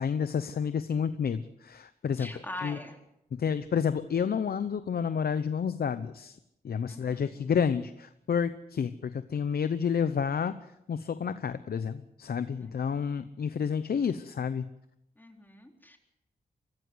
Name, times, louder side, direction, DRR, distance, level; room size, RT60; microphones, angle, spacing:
voice 1, 0.0-2.3 2.6-2.8 3.3-6.4 6.6-10.6 10.9-14.7, left 7 dB, 75° left, 12 dB, 0.8 m, -30 dB
voice 2, 2.2-3.0 6.9-7.5 12.6-13.1 15.2-16.0, left 1 dB, 10° left, 3 dB, 3.9 m, -43 dB
24.0 x 14.5 x 8.0 m, 0.83 s
cardioid pair, 70°, 16 cm